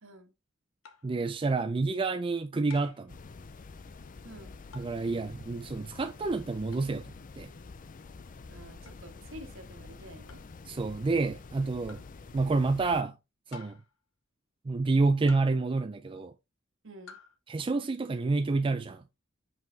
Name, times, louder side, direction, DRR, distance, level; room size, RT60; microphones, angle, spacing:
voice 1, 0.0-0.3 4.2-4.5 8.5-10.4 16.8-17.2, right 1 dB, 70° right, 1.5 m, -49 dB
sound 1, 0.8-1.2 2.7-3.1 4.7-5.0 6.7-6.9 8.9-9.0 10.3-10.6 11.9-12.2 13.5-14.0 15.3-15.7 17.1-17.4, left 6 dB, 75° left, 0.9 m, -51 dB
voice 2, 1.0-3.1 4.7-7.1 7.4-7.5 10.7-12.0 12.3-13.2 13.5-13.8 14.6-16.3 17.5-19.0, right 3 dB, 25° right, 0.4 m, -28 dB
sound 2, 3.1-13.0, left 4 dB, 40° left, 0.5 m, -48 dB
5.8 x 5.2 x 3.3 m
head